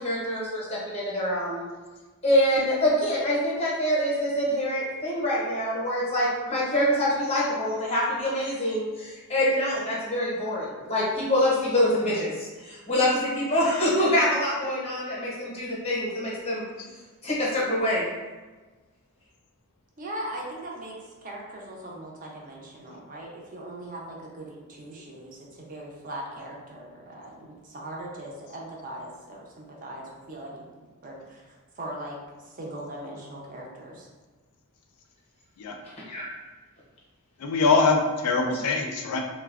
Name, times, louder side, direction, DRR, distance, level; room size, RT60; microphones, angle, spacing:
voice 1, 0.0-1.6 2.2-16.6 17.2-18.1 36.1-36.2, left 1 dB, 25° left, -6 dB, 0.6 m, -25 dB
voice 2, 20.0-30.6 31.0-32.2 32.5-34.1, right 1 dB, 35° right, -2 dB, 0.5 m, -40 dB
voice 3, 37.4-39.2, left 3 dB, 80° left, 3 dB, 0.4 m, -23 dB
3.2 x 2.0 x 2.3 m, 1.3 s
head